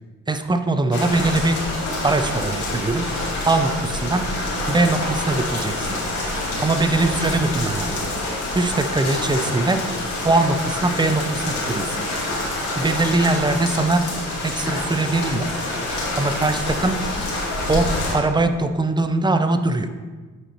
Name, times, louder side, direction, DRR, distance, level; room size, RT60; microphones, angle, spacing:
voice 1, 0.3-1.6 2.0-3.1 3.4-4.3 4.7-6.0 6.6-7.9 8.5-9.8 10.2-12.0 12.8-14.1 14.4-15.5 16.2-17.0 17.7-19.9, right 2 dB, 15° right, 8 dB, 0.6 m, -21 dB
sound 1, 0.9-18.1, left 2 dB, 75° left, 2.3 m, -26 dB
8.1 x 4.8 x 4.4 m, 1.3 s
cardioid pair, 90°, 30 cm